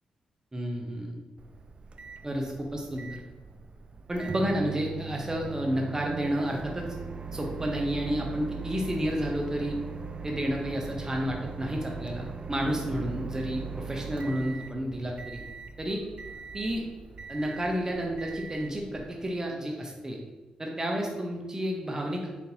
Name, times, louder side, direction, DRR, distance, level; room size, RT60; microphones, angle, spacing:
voice 1, 0.5-1.2 2.2-2.5 2.7-3.2 4.1-6.9 7.3-9.8 10.2-15.4 15.8-16.0 16.5-16.9 17.3-20.2 20.6-22.3, equal, 25° right, 0 dB, 0.7 m, -31 dB
Microwave oven, 1.4-19.3, right 5 dB, 45° right, 0.4 m, -40 dB
4.1 x 3.8 x 2.8 m, 1.2 s
supercardioid pair, 50°, 3 cm